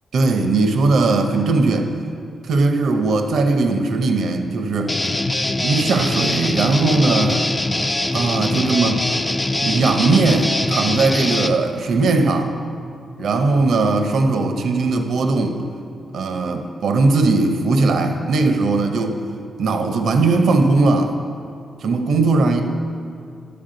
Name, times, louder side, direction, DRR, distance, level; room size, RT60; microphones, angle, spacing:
voice 1, 0.1-1.9 2.4-4.9 5.6-7.5 8.1-9.0 9.6-12.5 13.2-15.6 16.1-19.2 19.6-21.2 21.8-22.6, right 3 dB, 70° right, 6 dB, 0.7 m, -18 dB
Guitar, 4.9-11.6, left 2 dB, 10° left, 0.4 m, -22 dB
11.5 x 6.9 x 3.9 m, 2.4 s
wide cardioid pair, 155°, 0 cm